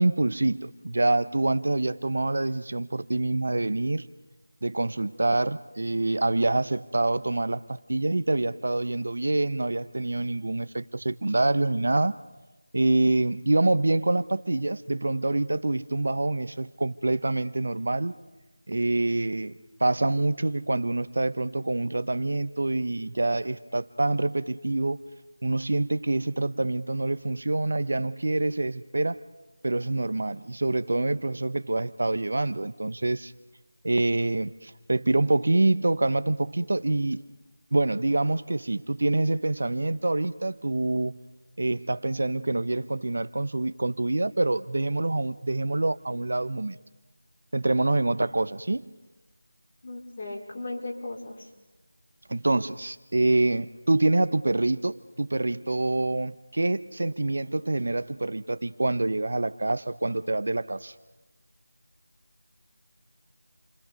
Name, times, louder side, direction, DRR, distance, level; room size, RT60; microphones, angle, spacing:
voice 1, 0.0-4.1 4.6-12.2 12.7-18.1 18.7-19.5 19.8-25.0 25.4-29.2 29.6-33.3 33.8-37.2 37.7-41.2 41.6-46.8 47.5-48.8 52.3-60.9, right 2 dB, 60° right, 13 dB, 0.9 m, -26 dB
voice 2, 49.8-51.5, left 2 dB, 40° left, -1 dB, 4.9 m, -36 dB
29.5 x 24.5 x 5.3 m, 1.1 s
figure-of-eight pair, 170°, 0 cm